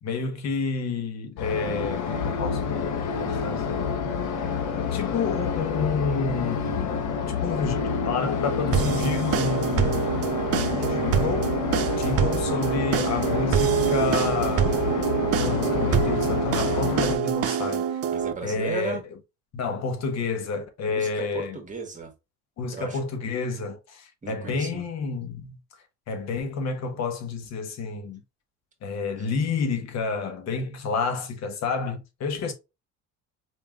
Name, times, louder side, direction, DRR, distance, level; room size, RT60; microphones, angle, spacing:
voice 1, 0.0-3.9 4.9-7.0 7.3-11.6 11.9-14.8 15.3-17.9 18.4-19.0 19.5-21.6 22.6-25.6 26.1-28.2 28.8-32.5, left 4 dB, 60° left, 1.2 m, -30 dB
sound 1, 1.4-17.1, left 6 dB, 85° left, 0.9 m, -28 dB
sound 2, 8.7-18.3, right 9 dB, 50° right, 0.7 m, -26 dB
voice 2, 10.6-11.0 18.1-19.0 20.9-22.1 22.7-23.0 24.2-24.8, right 4 dB, 25° right, 1.5 m, -35 dB
4.6 x 3.5 x 2.3 m
cardioid pair, 100°, 30 cm